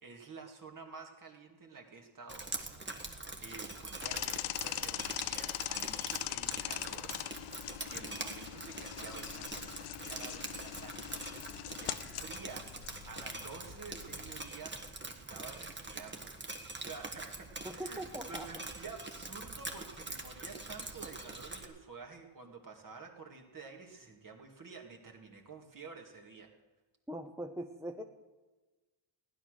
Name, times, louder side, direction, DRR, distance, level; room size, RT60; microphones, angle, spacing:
voice 1, 0.0-2.5 3.4-7.1 7.9-12.7 13.1-16.3 16.8-26.5, right 4 dB, 40° right, 3 dB, 2.2 m, -50 dB
Drip, 2.3-21.6, right 2 dB, 20° right, 1.4 m, -44 dB
sound 1, 4.0-14.4, left 14 dB, 90° left, 0.6 m, -41 dB
voice 2, 17.6-18.5 27.1-28.0, right 1 dB, 5° right, 5 dB, 0.7 m, -41 dB
15.5 x 11.0 x 6.5 m, 1.2 s
cardioid pair, 120°, 49 cm